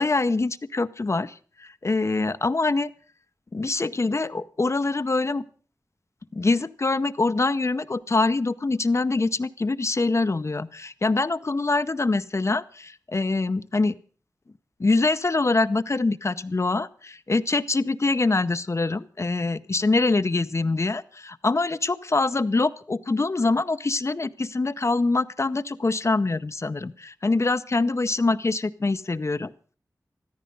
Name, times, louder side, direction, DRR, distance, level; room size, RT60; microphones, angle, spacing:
voice 1, 0.0-2.9 3.5-5.4 6.3-14.0 14.8-29.5, left 3 dB, 40° left, 13 dB, 0.7 m, -24 dB
14.0 x 13.5 x 5.3 m, 0.41 s
wide cardioid pair, 80°, 7 cm